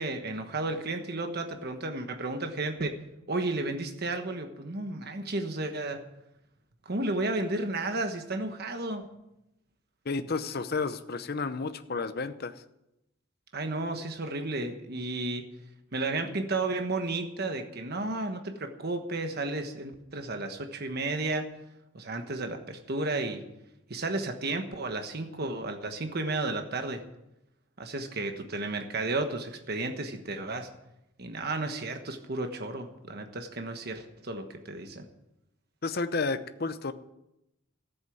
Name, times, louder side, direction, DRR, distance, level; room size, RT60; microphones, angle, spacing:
voice 1, 0.0-3.0 3.3-6.0 6.8-9.1 13.5-15.4 15.9-21.5 21.9-23.4 23.9-27.0 27.8-30.7 31.2-35.0, right 2 dB, 50° right, 6 dB, 1.3 m, -33 dB
voice 2, 10.0-12.6 35.8-36.9, left 4 dB, 50° left, 10 dB, 0.7 m, -31 dB
14.0 x 8.1 x 9.3 m, 0.88 s
head